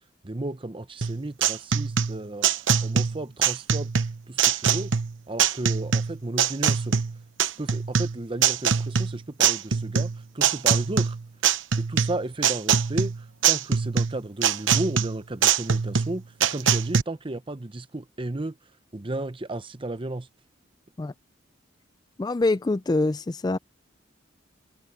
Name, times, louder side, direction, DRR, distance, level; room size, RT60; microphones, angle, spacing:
voice 1, 0.2-2.5 2.8-3.9 4.3-4.9 5.3-7.0 7.6-11.2 11.8-18.5 18.9-20.3, right 2 dB, 25° right, 0.8 m, -33 dB
sound 1, 1.0-17.0, right 7 dB, 80° right, 1.0 m, -23 dB
voice 2, 22.2-23.6, left 2 dB, 20° left, 0.4 m, -24 dB
head